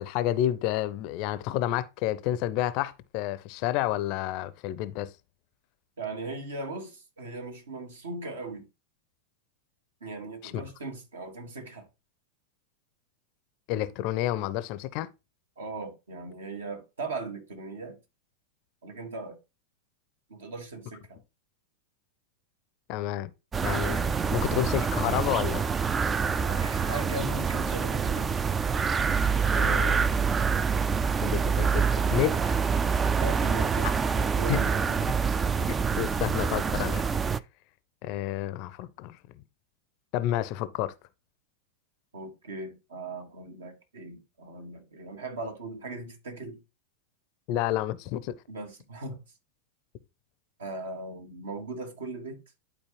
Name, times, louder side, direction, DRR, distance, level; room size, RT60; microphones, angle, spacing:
voice 1, 0.0-5.1 10.4-10.6 13.7-15.1 22.9-23.3 23.6-25.7 29.5-30.1 31.2-32.6 34.5-34.6 36.0-37.0 38.0-39.2 40.1-40.9 47.5-48.4, left 13 dB, 45° left, 0.5 m, -30 dB
voice 2, 6.0-8.7 10.0-11.9 15.6-18.0 18.8-19.4 20.3-21.2 26.3-28.3 33.2-33.9 34.1-35.0 42.1-46.6 48.5-49.2 50.6-52.4, right 2 dB, 65° right, 1.5 m, -38 dB
sound 1, 23.5-37.4, right 6 dB, 20° right, 0.3 m, -26 dB
11.5 x 4.2 x 2.9 m
figure-of-eight pair, 90°, 0 cm